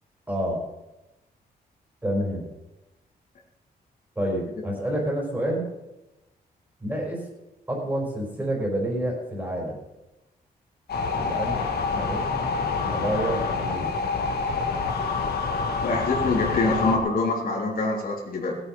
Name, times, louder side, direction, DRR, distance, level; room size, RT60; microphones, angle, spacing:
voice 1, 0.3-0.6 2.0-2.5 4.1-5.7 6.8-7.2 7.7-9.8 11.2-11.6 11.9-12.4 12.8-13.9, right 1 dB, 10° right, -1 dB, 4.7 m, -28 dB
sound 1, 10.9-17.0, left 4 dB, 80° left, 2.2 m, -27 dB
voice 2, 15.8-18.6, left 3 dB, 60° left, -2 dB, 3.4 m, -25 dB
18.5 x 9.1 x 5.4 m, 0.99 s
wide cardioid pair, 145°, 16 cm